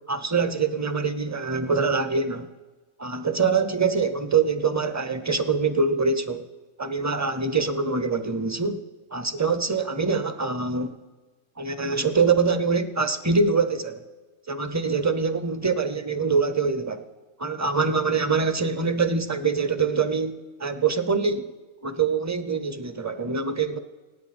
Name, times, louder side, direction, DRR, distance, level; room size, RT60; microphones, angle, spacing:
voice 1, 0.1-2.5 3.0-6.5 6.8-8.8 9.1-10.9 11.6-14.0 14.5-17.1 17.4-21.5 21.8-23.8, right 4 dB, 20° right, 11 dB, 0.6 m, -24 dB
26.5 x 9.1 x 4.3 m, 1.3 s
omnidirectional pair, 1.2 m